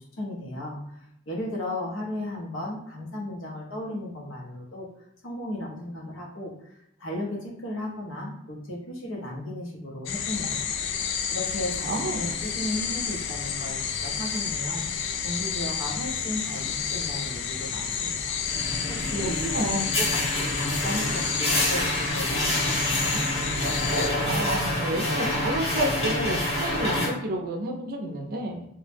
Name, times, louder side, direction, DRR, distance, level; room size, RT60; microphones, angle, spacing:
voice 1, 0.2-4.9 5.2-6.7 7.0-10.8 11.3-14.9 15.2-18.4 18.6-23.2, left 1 dB, 80° left, -1 dB, 0.7 m, -35 dB
sound 1, 10.1-24.1, left 7 dB, 60° left, 0.3 m, -30 dB
voice 2, 11.9-12.3 19.2-19.9 24.2-28.7, right 1 dB, 45° right, 3 dB, 0.4 m, -30 dB
sound 2, 18.5-27.1, left 1 dB, 30° left, 0.7 m, -27 dB
2.1 x 2.0 x 3.2 m, 0.76 s
head